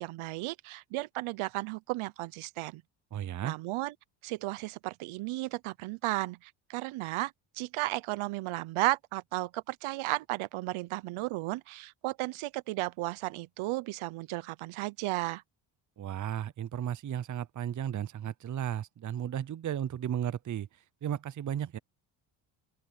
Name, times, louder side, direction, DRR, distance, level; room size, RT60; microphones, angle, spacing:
voice 1, 0.0-2.8 3.4-3.9 4.2-15.4, right 19 dB, 75° right, 0.9 m, -34 dB
voice 2, 3.1-3.6 16.0-20.7 21.0-21.8, right 10 dB, 40° right, 0.7 m, -34 dB
open air
supercardioid pair, 75°, 49 cm